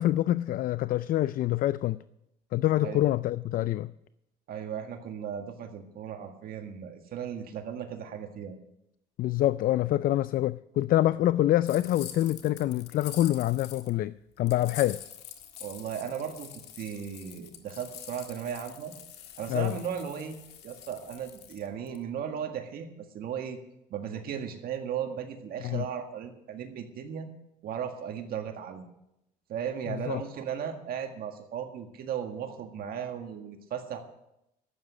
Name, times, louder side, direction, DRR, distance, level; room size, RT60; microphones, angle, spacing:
voice 1, 0.0-2.0 2.5-3.9 9.2-15.0 19.5-19.7 25.6-25.9 30.1-30.2, left 14 dB, 55° left, 0.4 m, -26 dB
voice 2, 4.5-8.6 15.6-18.9 19.4-23.6 23.9-27.3 27.6-28.9 29.5-34.0, right 8 dB, 65° right, 1.8 m, -36 dB
sound 1, 11.6-13.9 14.5-22.0, left 10 dB, 80° left, 1.7 m, -46 dB
12.0 x 8.3 x 9.8 m
cardioid pair, 110°, 17 cm